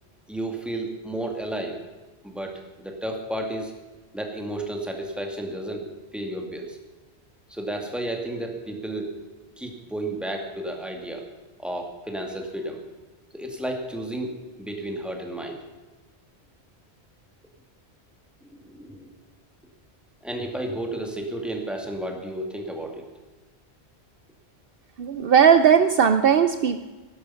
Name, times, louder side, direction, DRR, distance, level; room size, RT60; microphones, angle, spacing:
voice 1, 0.3-1.8 2.2-3.7 4.1-6.8 7.5-9.2 9.6-11.2 11.6-12.8 13.3-15.6 18.6-19.1 20.2-23.0, right 1 dB, ahead, 2 dB, 2.1 m, -32 dB
voice 2, 25.0-26.8, right 7 dB, 65° right, 10 dB, 0.8 m, -17 dB
17.0 x 12.0 x 5.8 m, 1.2 s
omnidirectional pair, 1.1 m